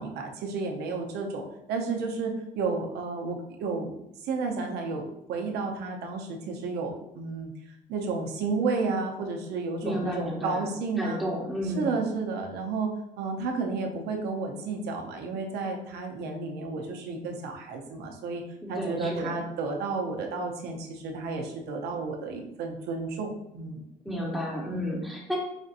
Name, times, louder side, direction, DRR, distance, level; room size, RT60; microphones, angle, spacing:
voice 1, 0.0-1.4 1.7-3.9 4.2-7.5 7.9-11.2 11.7-18.4 18.7-23.8, right 4 dB, 80° right, 3 dB, 0.7 m, -32 dB
voice 2, 9.8-10.7 11.0-11.9 18.6-19.4 24.0-25.4, equal, ahead, -3 dB, 0.9 m, -32 dB
5.0 x 2.6 x 2.5 m, 0.86 s
cardioid pair, 110°, 17 cm